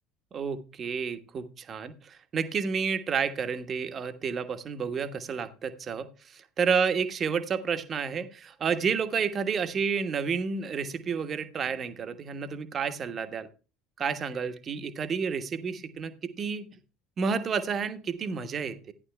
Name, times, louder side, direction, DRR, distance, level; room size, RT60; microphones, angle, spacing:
voice 1, 0.3-13.5 14.0-16.7 17.2-18.9, right 6 dB, 35° right, 10 dB, 1.3 m, -30 dB
14.5 x 10.5 x 2.3 m, 0.33 s
figure-of-eight pair, 65°, 0 cm